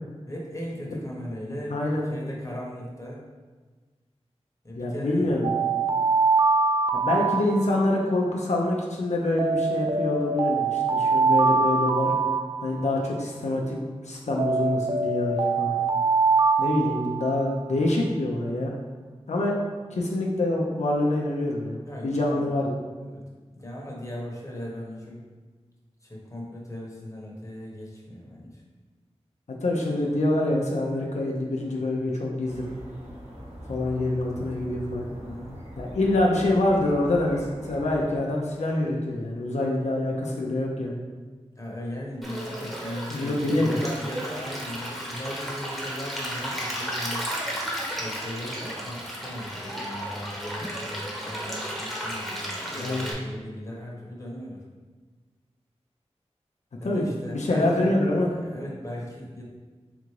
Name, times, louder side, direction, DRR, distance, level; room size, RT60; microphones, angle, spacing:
voice 1, 0.3-1.8 2.0-3.2 4.6-5.4 21.8-22.5 23.1-23.2 23.5-25.2 26.0-28.6 35.2-35.6 41.6-47.3 47.9-54.6 56.8-57.9 58.2-59.4, equal, 25° left, -3 dB, 1.0 m, -37 dB
voice 2, 1.7-2.0 4.8-5.5 6.9-12.1 12.6-13.8 14.0-15.8 16.6-18.7 19.3-19.6 19.9-22.8 29.6-32.7 33.7-35.1 35.8-41.0 43.1-43.8 52.5-53.1 56.8-58.3, left 1 dB, 90° left, -2 dB, 0.5 m, -26 dB
Alarm, 5.4-8.0 9.4-13.0 14.4-17.6, right 4 dB, 50° right, 0.4 m, -24 dB
sound 1, 32.4-38.1, equal, 75° right, 1.3 m, -42 dB
Stream, 42.2-53.1, equal, ahead, 0.9 m, -34 dB
3.7 x 3.4 x 3.2 m, 1.4 s
wide cardioid pair, 55°, 11 cm